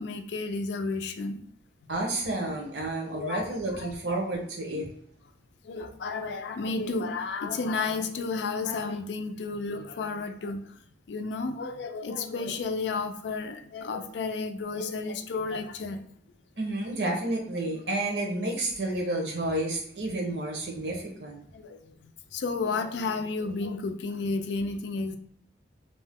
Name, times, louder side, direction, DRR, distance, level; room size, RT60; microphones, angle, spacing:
voice 1, 0.0-1.4 3.1-3.9 4.2-4.3 5.6-10.8 11.1-16.0 17.9-18.0 20.9-21.0 21.5-25.2, left 4 dB, 85° left, 8 dB, 0.4 m, -32 dB
voice 2, 1.9-4.9 16.6-21.4, right 2 dB, 80° right, 0 dB, 0.8 m, -30 dB
2.7 x 2.0 x 3.5 m, 0.65 s
head